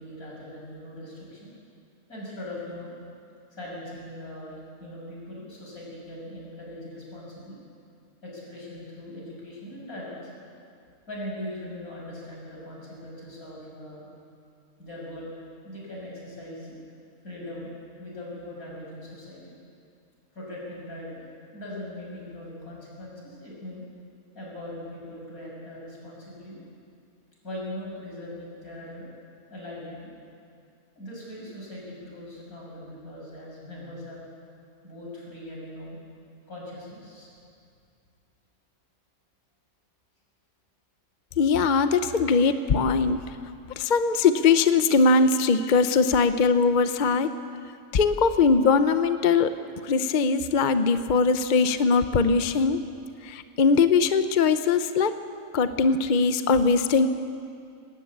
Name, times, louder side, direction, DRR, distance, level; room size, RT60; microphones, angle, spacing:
voice 1, 0.0-1.5 2.1-2.9 3.5-7.6 8.2-10.2 11.1-14.1 14.8-15.4 15.6-16.8 17.2-17.7 18.0-19.5 20.3-21.2 21.5-23.8 24.3-26.6 27.4-29.1 29.5-30.1 31.0-34.2 34.8-36.0 36.5-37.3, left 1 dB, 75° left, -4 dB, 7.1 m, -40 dB
voice 2, 41.4-43.2 43.8-47.3 47.9-49.6 49.8-52.8 53.2-55.1 55.5-57.1, left 4 dB, 45° left, 10 dB, 0.7 m, -21 dB
19.5 x 17.5 x 8.5 m, 2.3 s
omnidirectional pair, 1.5 m